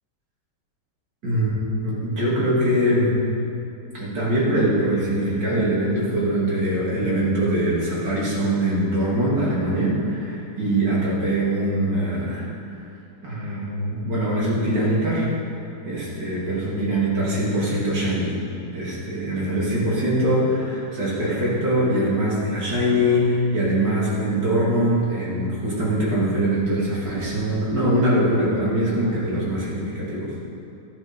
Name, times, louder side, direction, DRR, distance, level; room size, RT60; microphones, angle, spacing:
voice 1, 1.2-3.1 3.9-12.5 13.2-15.3 15.8-18.3 18.7-30.3, right 1 dB, 75° right, -7 dB, 3.3 m, -22 dB
13.0 x 11.0 x 4.5 m, 2.6 s
omnidirectional pair, 1.9 m